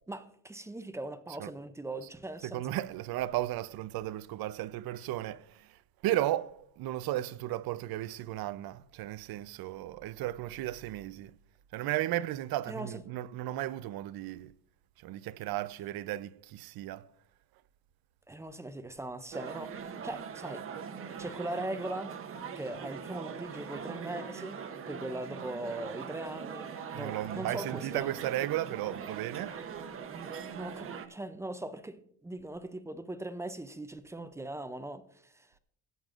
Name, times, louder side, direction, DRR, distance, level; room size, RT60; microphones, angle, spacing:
voice 1, 0.1-2.6 12.7-12.9 18.3-19.7 20.0-20.7 21.2-22.1 22.6-24.6 24.9-28.1 30.1-35.5, right 1 dB, 10° right, 0.3 m, -40 dB
voice 2, 2.4-11.3 11.7-14.5 15.0-17.1 26.9-29.9, right 14 dB, 75° right, 0.5 m, -35 dB
sound 1, 19.3-31.1, right 6 dB, 35° right, 0.7 m, -42 dB
16.0 x 9.1 x 2.4 m
cardioid pair, 180°, 36 cm